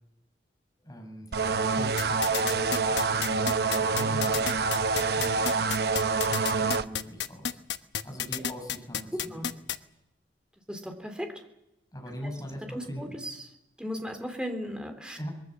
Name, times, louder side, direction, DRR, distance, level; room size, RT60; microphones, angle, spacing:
voice 1, 0.8-5.9 6.3-7.6 8.0-9.5 11.9-13.1 15.2-15.3, equal, 20° left, 2 dB, 6.0 m, -41 dB
sound 1, 1.3-6.9, right 4 dB, 60° right, 0.8 m, -26 dB
sound 2, 2.0-9.8, left 8 dB, 75° left, 1.1 m, -31 dB
voice 2, 9.1-9.5 10.7-11.3 12.7-13.4 13.8-15.2, equal, 5° right, 4 dB, 3.5 m, -36 dB
24.0 x 22.0 x 7.4 m, 0.87 s
head